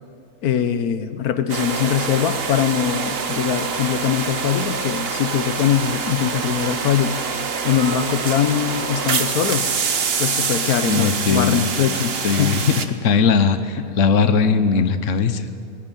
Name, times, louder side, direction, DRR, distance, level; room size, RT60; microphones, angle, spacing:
voice 1, 0.4-7.2 7.6-9.7 10.2-12.6 13.8-13.9, left 9 dB, 85° left, 11 dB, 1.4 m, -22 dB
sound 1, 1.5-12.9, right 5 dB, 45° right, 1.2 m, -25 dB
voice 2, 10.8-11.7 12.2-15.5, left 5 dB, 60° left, 10 dB, 1.3 m, -19 dB
18.0 x 18.0 x 9.2 m, 2.3 s
omnidirectional pair, 1.5 m